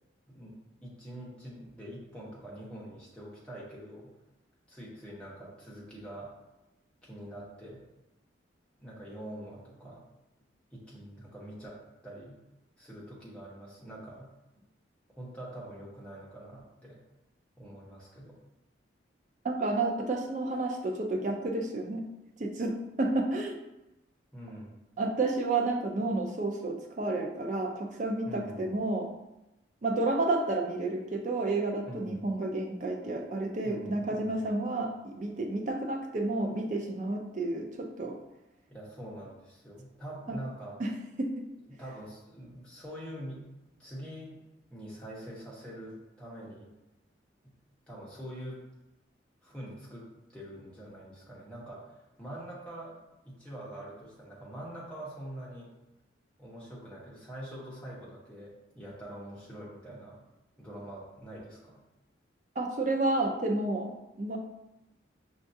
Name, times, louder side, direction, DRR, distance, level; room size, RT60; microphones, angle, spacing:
voice 1, 0.8-4.1 4.7-6.3 7.0-7.8 8.8-10.1 10.7-12.4 12.8-14.3 15.1-17.0 17.6-18.4 24.3-24.8 28.2-28.7 31.9-32.3 33.6-34.3 38.7-40.8 41.7-43.4 43.8-44.4 44.7-46.7 47.4-47.5 47.9-48.6 49.4-53.0 53.2-55.7 56.4-60.2 60.6-61.8, right 1 dB, 5° left, -7 dB, 0.9 m, -44 dB
voice 2, 19.4-22.0 22.4-23.5 25.0-29.1 29.8-38.2 40.3-40.4 40.8-40.9 41.2-41.5 62.6-64.4, right 2 dB, 40° right, 1 dB, 0.4 m, -31 dB
5.4 x 2.3 x 2.7 m, 0.97 s
head